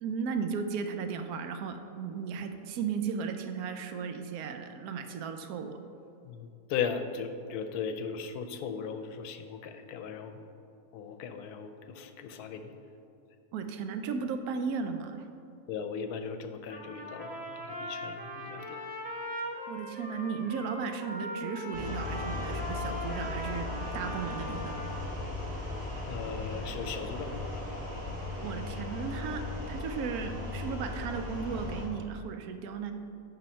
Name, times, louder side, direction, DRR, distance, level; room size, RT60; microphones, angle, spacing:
voice 1, 0.0-5.8 13.5-15.3 19.7-23.7 23.9-24.8 28.4-32.9, right 6 dB, 80° right, 7 dB, 1.1 m, -35 dB
voice 2, 6.2-10.4 10.9-12.7 15.7-18.8 26.1-27.7 27.9-28.0, left 6 dB, 85° left, 8 dB, 1.1 m, -37 dB
Trumpet, 16.7-25.1, equal, 10° right, 0.5 m, -40 dB
sound 1, 21.7-31.9, left 2 dB, 30° right, 2.0 m, -37 dB
10.5 x 4.1 x 4.3 m, 2.6 s
omnidirectional pair, 1.6 m